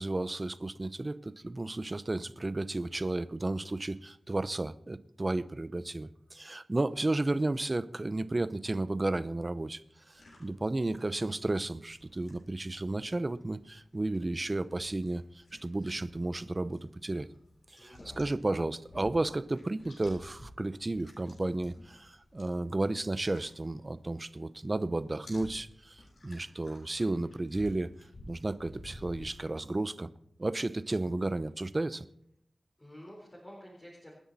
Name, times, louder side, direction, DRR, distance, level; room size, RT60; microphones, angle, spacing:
voice 1, 0.0-9.8 10.1-17.3 17.7-27.9 28.3-30.1 30.4-32.1, right 2 dB, 30° right, 14 dB, 0.7 m, -33 dB
sound 1, 10.1-24.4 24.6-29.8, left 1 dB, 70° left, 7.7 m, -54 dB
voice 2, 17.7-18.2 32.8-34.1, equal, 20° left, -4 dB, 4.0 m, -50 dB
27.0 x 10.0 x 4.2 m, 0.73 s
wide cardioid pair, 110°, 0 cm